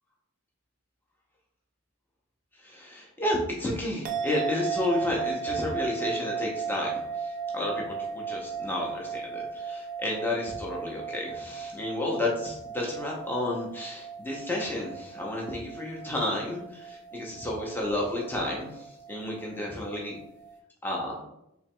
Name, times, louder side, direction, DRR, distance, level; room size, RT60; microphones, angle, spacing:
voice 1, 2.6-20.2 20.8-21.2, left 1 dB, 10° left, -2 dB, 0.6 m, -31 dB
sound 1, 4.0-20.6, right 5 dB, 40° right, 0.5 m, -36 dB
4.5 x 3.3 x 2.2 m, 0.82 s
head